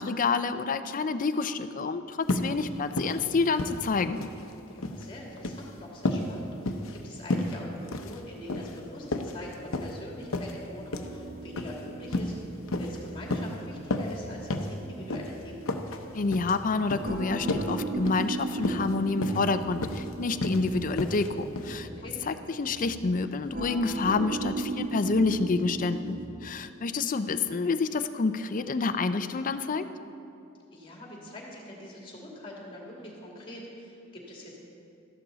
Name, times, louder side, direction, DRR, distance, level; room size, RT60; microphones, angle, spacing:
voice 1, 0.0-4.2 16.1-21.9 22.3-29.9, left 4 dB, 40° left, 10 dB, 0.5 m, -28 dB
sound 1, 2.2-2.5 2.9-3.2 3.5-4.4 4.7-5.0 5.4-5.6 6.0-6.3 6.6-7.0 7.3-7.5 7.9-8.2 8.5-8.8 9.1-10.0 10.3-10.5 10.9-11.1 11.5-11.7 12.1-12.4 12.7-13.0 13.3-13.5 13.9-14.2 14.5-14.7 15.1-15.3 15.6-16.0 16.3-16.5 16.9-17.1 17.5-17.7 18.0-18.2 18.6-18.9 19.2-19.5 19.8-20.1 20.4-20.6 21.0-21.3 21.6-21.7, left 2 dB, 75° left, 0.8 m, -31 dB
voice 2, 4.7-15.8 21.8-22.2 30.7-34.6, left 1 dB, 25° left, -2 dB, 2.5 m, -44 dB
sound 2, 11.0-26.3, right 2 dB, 45° right, 1.4 m, -37 dB
13.5 x 11.5 x 4.0 m, 2.7 s
head